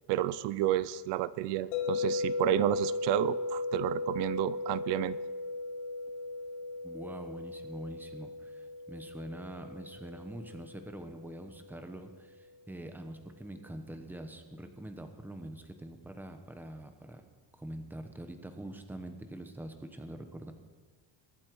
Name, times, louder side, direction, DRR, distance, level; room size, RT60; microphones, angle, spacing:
voice 1, 0.1-5.2, right 14 dB, 60° right, 17 dB, 0.7 m, -31 dB
sound 1, 1.7-11.8, left 3 dB, 85° left, 2.7 m, -37 dB
voice 2, 6.8-17.2 17.6-20.5, right 1 dB, 5° right, 7 dB, 1.0 m, -44 dB
23.0 x 8.7 x 4.7 m, 1.5 s
cardioid pair, 165°, 47 cm